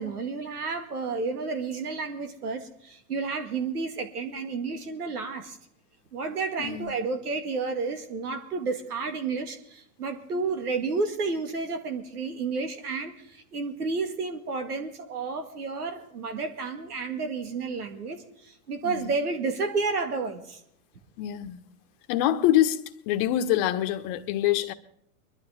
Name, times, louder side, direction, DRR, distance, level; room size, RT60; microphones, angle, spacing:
voice 1, 0.0-5.6 6.1-20.6, right 4 dB, 90° right, 2.2 m, -31 dB
voice 2, 6.6-6.9 18.8-19.1 21.2-21.6 22.1-22.8 23.1-24.7, left 12 dB, 45° left, 1.3 m, -25 dB
23.0 x 12.0 x 3.6 m
hypercardioid pair, 110°, 44 cm